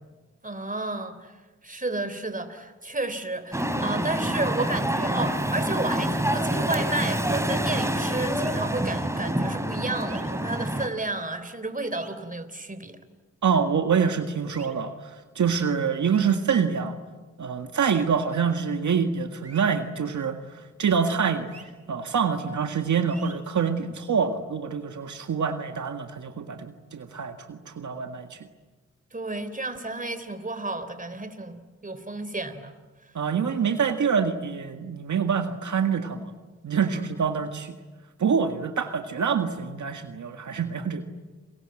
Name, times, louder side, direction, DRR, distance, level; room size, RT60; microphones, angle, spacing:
voice 1, 0.4-1.3 1.6-13.0 29.1-32.8 36.9-37.1, right 2 dB, 25° right, 11 dB, 3.7 m, -32 dB
sound 1, 3.5-10.9, right 1 dB, 10° right, 3.7 m, -27 dB
sound 2, 8.4-8.6 10.0-10.2 11.8-12.1 14.5-14.7 16.1-16.3 17.8-18.0 19.4-19.7 21.5-21.6 23.0-23.3, right 4 dB, 55° right, 6.1 m, -47 dB
voice 2, 13.4-16.9 17.4-21.5 21.9-28.4 33.2-36.3 36.6-37.8 38.2-41.0, right 6 dB, 75° right, 6 dB, 1.9 m, -26 dB
30.0 x 22.0 x 9.0 m, 1.3 s
cardioid pair, 55°, 30 cm